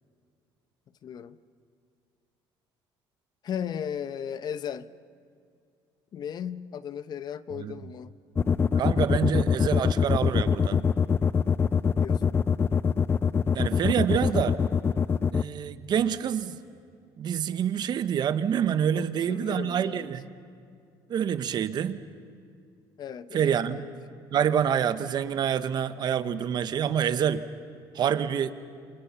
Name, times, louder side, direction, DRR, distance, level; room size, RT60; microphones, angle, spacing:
voice 1, 1.0-1.4 3.4-4.9 6.1-8.1 12.0-12.4 18.9-20.1 23.0-23.9, left 8 dB, 50° left, 14 dB, 0.9 m, -36 dB
sound 1, 8.4-15.4, left 6 dB, 25° left, 0.5 m, -23 dB
voice 2, 8.8-10.8 13.5-14.6 15.3-16.6 17.2-20.3 21.1-22.0 23.3-23.9 24.3-27.4 27.9-28.5, right 8 dB, 50° right, 12 dB, 1.2 m, -27 dB
28.0 x 27.0 x 5.8 m, 2.3 s
cardioid pair, 105°, 9 cm